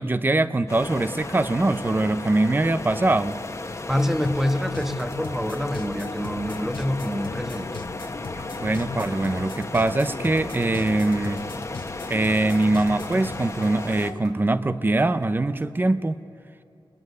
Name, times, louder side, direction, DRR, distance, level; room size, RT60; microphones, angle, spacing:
voice 1, 0.0-3.4 8.6-11.5 12.1-16.2, right 2 dB, 20° right, 12 dB, 0.8 m, -23 dB
sound 1, 0.7-14.1, left 2 dB, 35° left, 1.4 m, -35 dB
sound 2, 3.9-14.2, left 4 dB, 65° left, 1.3 m, -38 dB
voice 2, 3.9-7.9, left 1 dB, 5° right, 6 dB, 1.5 m, -26 dB
sound 3, 8.4-8.5 9.1-9.6 10.3-10.4 11.1-11.6 12.3-12.4 13.0-13.5 14.2-14.3 15.0-15.5, right 1 dB, 45° right, 3.8 m, -47 dB
29.0 x 21.0 x 9.6 m, 2.7 s
wide cardioid pair, 120°, 9 cm